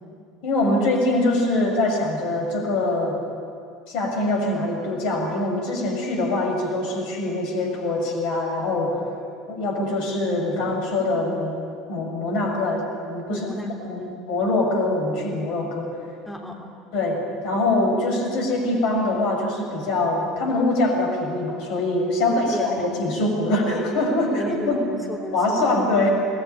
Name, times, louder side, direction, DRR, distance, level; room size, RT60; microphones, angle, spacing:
voice 1, 0.4-3.2 3.9-9.0 9.5-11.6 11.9-13.5 13.8-15.9 16.9-24.8 25.3-26.1, left 2 dB, 60° left, 2 dB, 6.5 m, -23 dB
voice 2, 13.3-14.2 16.2-16.7 22.2-22.8 24.3-25.8, left 1 dB, ahead, 0 dB, 3.4 m, -34 dB
26.5 x 20.5 x 9.3 m, 2.4 s
figure-of-eight pair, 70°, 0 cm